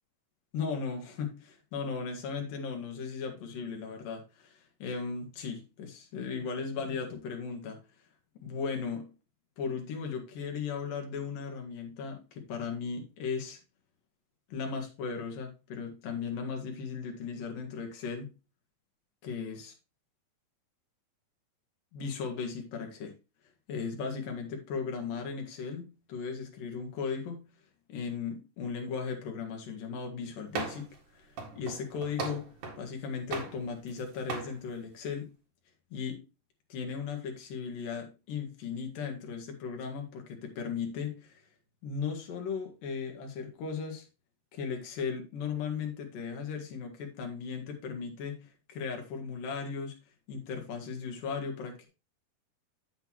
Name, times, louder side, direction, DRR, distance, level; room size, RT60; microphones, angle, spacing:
voice 1, 0.5-7.8 8.4-9.1 9.6-13.6 14.5-18.3 19.2-19.7 21.9-23.2 23.7-27.4 27.9-35.3 35.9-36.2 36.7-41.4 41.8-44.1 44.5-50.0 50.3-51.9, left 5 dB, 70° left, 2 dB, 3.4 m, -37 dB
sound 1, 30.5-31.0 31.4-32.9 33.3-34.0 34.3-34.5, right 4 dB, 65° right, 3.4 m, -38 dB
8.0 x 7.9 x 3.0 m, 0.28 s
omnidirectional pair, 4.1 m